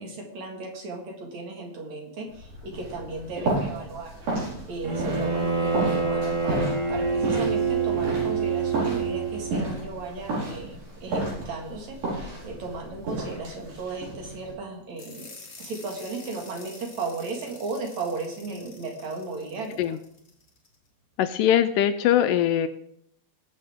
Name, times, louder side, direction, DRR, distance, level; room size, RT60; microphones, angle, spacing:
voice 1, 0.0-4.2 4.7-15.3 15.6-20.0, right 3 dB, 55° right, 1 dB, 3.0 m, -35 dB
sound 1, 2.3-14.5, right 2 dB, 80° right, 6.7 m, -32 dB
Bowed string instrument, 4.8-9.7, right 5 dB, 35° right, 1.2 m, -26 dB
sound 2, 15.0-20.7, left 3 dB, 40° left, 1.0 m, -48 dB
voice 2, 21.2-22.7, left 10 dB, 80° left, 10 dB, 2.1 m, -21 dB
19.5 x 7.7 x 3.6 m, 0.71 s
omnidirectional pair, 4.0 m